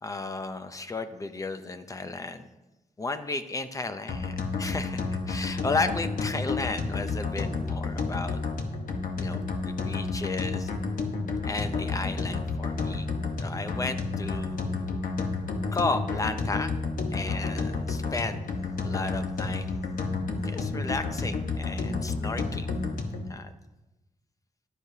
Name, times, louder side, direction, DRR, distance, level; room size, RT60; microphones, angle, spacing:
voice 1, 0.0-2.5 3.0-8.4 9.2-10.7 11.4-13.1 13.4-15.0 15.7-16.7 17.1-18.5 18.8-19.8 20.4-22.7 23.3-23.5, left 3 dB, 25° left, 10 dB, 0.6 m, -34 dB
sound 1, 4.1-23.3, left 3 dB, 70° left, 1.1 m, -31 dB
14.5 x 11.0 x 2.8 m, 1.0 s
wide cardioid pair, 170°, 14 cm